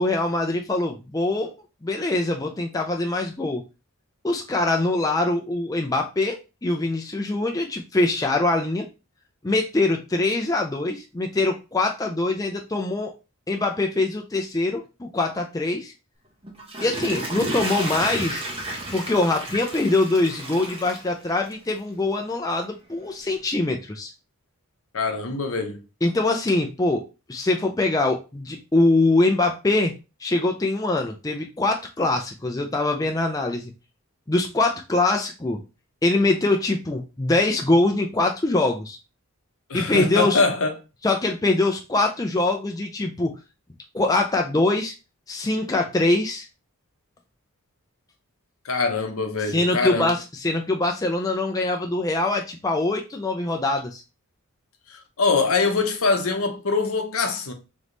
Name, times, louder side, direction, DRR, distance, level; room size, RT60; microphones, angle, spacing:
voice 1, 0.0-1.5 1.8-3.6 4.2-8.8 9.4-13.1 13.5-15.9 16.8-18.5 18.9-24.1 26.0-27.0 27.3-29.9 30.2-33.7 34.3-35.6 36.0-39.0 39.7-40.4 41.0-43.3 43.9-44.9 45.3-46.5 49.4-54.0, left 2 dB, 15° left, 0.4 m, -23 dB
Water / Toilet flush, 16.4-21.7 22.2-22.3, right 1 dB, 25° right, 0.9 m, -32 dB
voice 2, 24.9-25.8 39.7-40.7 48.6-50.1 54.9-57.5, left 4 dB, 70° left, 0.8 m, -23 dB
3.5 x 3.1 x 3.8 m
head